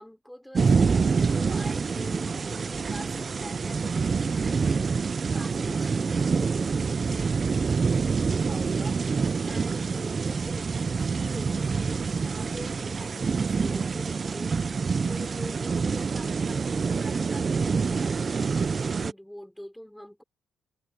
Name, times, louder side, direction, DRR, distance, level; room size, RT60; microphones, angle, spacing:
voice 1, 0.0-14.8 15.1-20.2, equal, 5° left, 4.2 m, -44 dB
sound 1, 0.5-19.1, right 5 dB, 35° right, 0.5 m, -26 dB
cardioid pair, 90°, 0 cm